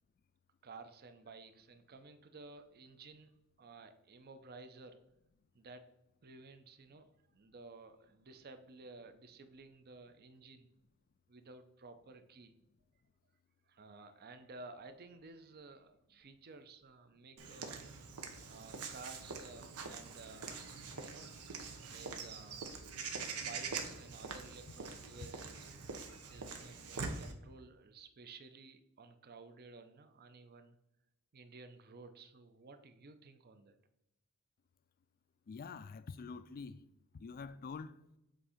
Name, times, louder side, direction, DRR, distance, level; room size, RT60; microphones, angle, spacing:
voice 1, 0.6-3.3 3.6-5.0 5.5-5.9 6.2-10.7 11.3-12.5 13.7-18.1 18.5-20.7 21.0-21.3 21.9-22.7 23.3-25.7 26.3-30.8 31.3-33.8, right 3 dB, 45° right, 0.6 m, -54 dB
Walk footsteps / Bird vocalization bird call bird song, 17.4-27.3, right 4 dB, 90° right, 0.8 m, -44 dB
voice 2, 35.5-36.8 37.1-38.0, left 5 dB, 40° left, 0.3 m, -46 dB
7.6 x 2.7 x 4.9 m
head